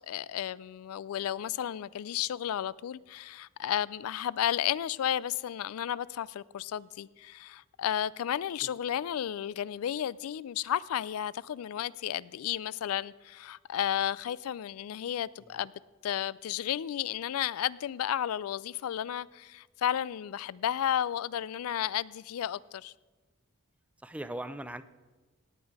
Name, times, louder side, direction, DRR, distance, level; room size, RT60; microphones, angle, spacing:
voice 1, 0.1-15.7 16.0-22.9, left 10 dB, 75° left, 0.3 m, -33 dB
voice 2, 24.0-24.8, right 1 dB, 5° right, 0.4 m, -40 dB
17.5 x 8.2 x 4.7 m
head